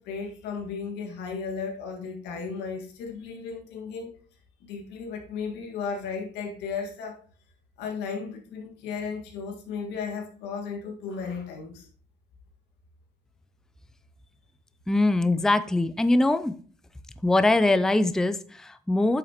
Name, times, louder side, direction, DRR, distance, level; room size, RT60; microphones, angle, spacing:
voice 1, 0.0-4.2 4.6-7.2 7.8-11.9, left 5 dB, 90° left, 3 dB, 1.8 m, -35 dB
voice 2, 14.9-16.6 17.2-19.2, left 2 dB, 5° left, 12 dB, 0.4 m, -22 dB
8.9 x 6.0 x 2.9 m, 0.44 s
cardioid pair, 110°, 17 cm